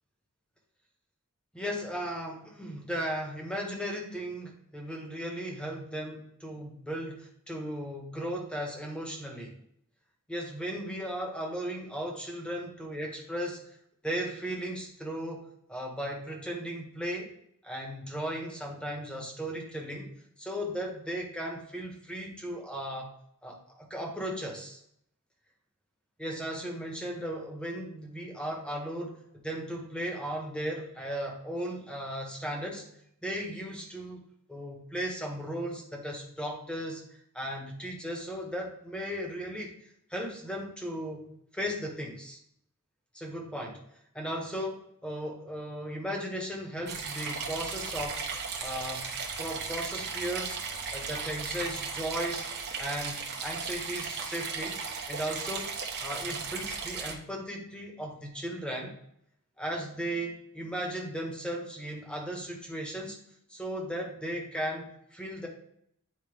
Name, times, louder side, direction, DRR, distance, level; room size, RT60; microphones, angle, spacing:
voice 1, 1.5-9.5 10.3-13.6 14.0-17.3 17.6-20.1 20.4-23.1 23.4-24.8 26.2-32.8 33.2-34.2 34.5-37.0 37.3-42.4 43.1-43.8 44.1-48.2 48.6-50.6 50.9-52.5 52.8-54.8 55.1-55.7 56.0-58.9 59.6-63.2 63.5-65.5, equal, 5° left, 0 dB, 1.4 m, -36 dB
sound 1, 46.9-57.1, right 5 dB, 50° right, 1.1 m, -36 dB
9.2 x 4.5 x 3.5 m, 0.72 s
head